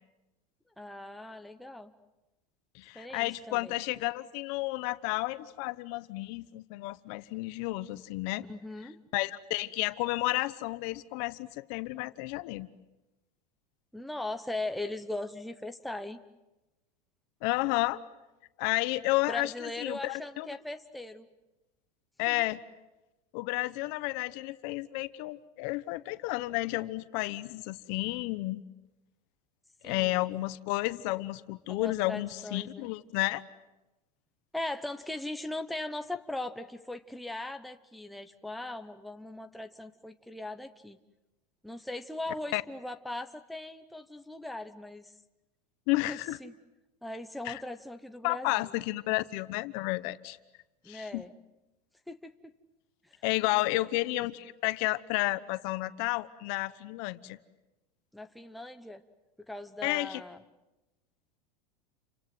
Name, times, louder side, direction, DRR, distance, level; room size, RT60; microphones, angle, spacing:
voice 1, 0.8-1.9 2.9-3.7 8.5-9.0 13.9-16.2 19.3-21.3 22.3-22.5 29.8-30.3 31.7-32.9 34.5-41.0 41.6-45.1 46.1-46.5 47.0-48.7 50.8-51.3 52.1-52.3 53.7-53.9 58.1-59.0 59.5-60.4, left 2 dB, ahead, 6 dB, 0.9 m, -39 dB
voice 2, 2.7-8.5 9.1-12.7 17.4-18.0 18.6-20.5 22.2-22.6 23.3-28.6 29.8-33.4 42.5-42.6 45.9-46.4 47.4-47.6 48.2-50.4 50.9-51.2 53.2-57.4 59.8-60.2, left 20 dB, 55° left, 14 dB, 1.2 m, -31 dB
30.0 x 25.0 x 7.7 m, 1.0 s
supercardioid pair, 150°, 20 cm